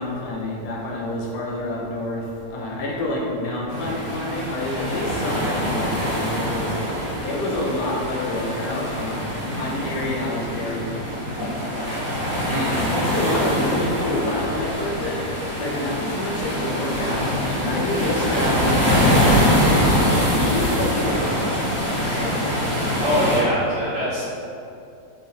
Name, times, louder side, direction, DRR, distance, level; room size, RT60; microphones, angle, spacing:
voice 1, 0.0-10.9 11.3-12.2 12.8-15.2 15.6-22.3, left 1 dB, 80° left, -3 dB, 1.2 m, -28 dB
sound 1, 3.7-23.4, equal, 20° left, 0.9 m, -24 dB
voice 2, 12.5-12.8 23.0-24.2, left 1 dB, 80° right, -12 dB, 2.0 m, -23 dB
3.9 x 2.8 x 2.6 m, 2.6 s
omnidirectional pair, 1.8 m